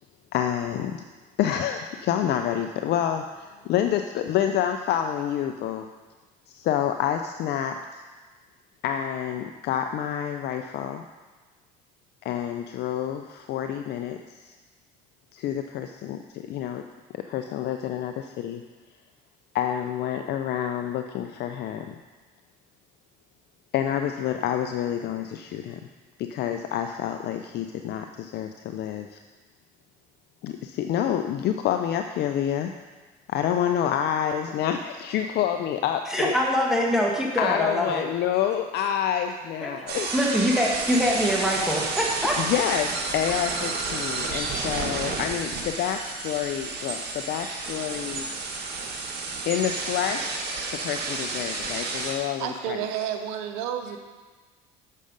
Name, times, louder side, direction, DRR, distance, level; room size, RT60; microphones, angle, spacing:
voice 1, 0.3-1.0 1.4-5.9 6.5-7.8 8.8-11.0 12.2-14.5 15.3-16.8 17.1-18.6 19.5-21.9 23.7-25.8 26.2-29.2 30.4-32.7 33.3-36.3 37.4-40.1 42.4-48.3 49.5-52.8, left 10 dB, 60° left, 6 dB, 0.5 m, -28 dB
voice 2, 36.1-38.0 39.6-39.7 40.1-42.4, equal, ahead, -3 dB, 1.4 m, -24 dB
sound 1, 39.9-52.1, right 3 dB, 55° right, 1.6 m, -31 dB
voice 3, 52.4-54.0, right 9 dB, 85° right, 6 dB, 0.7 m, -30 dB
6.8 x 6.5 x 5.1 m, 1.3 s
supercardioid pair, 90°, 20 cm